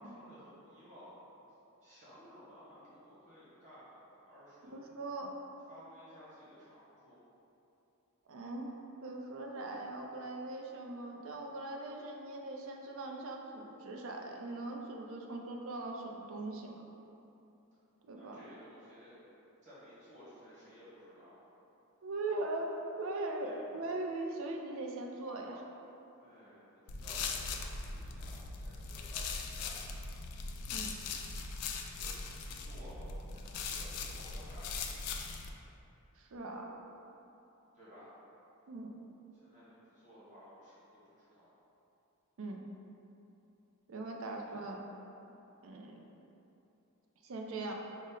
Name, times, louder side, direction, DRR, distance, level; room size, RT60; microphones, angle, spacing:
voice 1, 0.0-1.5 1.8-4.7 5.7-7.2 18.2-19.2 19.6-21.3 23.4-23.5 26.2-30.0 31.9-34.9 37.7-38.1 39.4-41.5 44.2-44.4, equal, 35° right, -12 dB, 1.4 m, -56 dB
voice 2, 4.6-5.3 8.3-16.8 18.0-18.4 22.0-25.6 30.7-31.0 36.2-36.7 38.7-38.9 42.4-42.6 43.9-44.8 45.6-46.1 47.2-47.7, right 2 dB, 60° right, 1 dB, 0.4 m, -40 dB
sound 1, 26.9-35.5, left 4 dB, 90° left, 0.4 m, -40 dB
5.1 x 2.1 x 3.7 m, 3.0 s
head